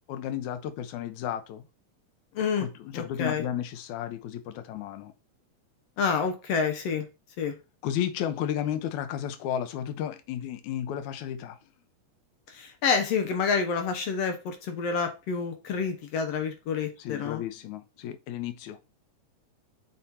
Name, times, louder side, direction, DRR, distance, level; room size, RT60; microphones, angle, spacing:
voice 1, 0.1-1.6 2.6-5.1 7.8-11.6 17.0-18.8, left 10 dB, 85° left, 2.2 m, -33 dB
voice 2, 2.3-2.7 2.9-3.4 6.0-7.1 7.4-7.6 12.5-17.4, left 5 dB, 65° left, 1.9 m, -28 dB
7.6 x 4.2 x 4.3 m
omnidirectional pair, 3.3 m